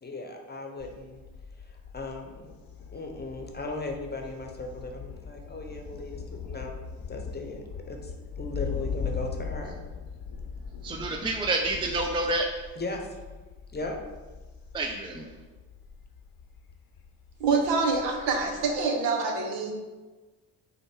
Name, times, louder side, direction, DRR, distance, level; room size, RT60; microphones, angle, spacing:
voice 1, 0.0-1.2 1.9-2.5 2.9-6.7 7.1-8.1 8.4-9.7 12.8-13.0 13.7-13.9, left 2 dB, 25° left, 2 dB, 0.8 m, -37 dB
Thunder, 0.8-18.9, left 6 dB, 50° left, 0.7 m, -40 dB
voice 2, 10.8-12.5 14.7-15.3, right 2 dB, 10° right, 2 dB, 0.4 m, -28 dB
voice 3, 17.4-19.7, right 4 dB, 75° right, 3 dB, 0.8 m, -26 dB
5.1 x 2.2 x 4.3 m, 1.2 s
hypercardioid pair, 55°, 44 cm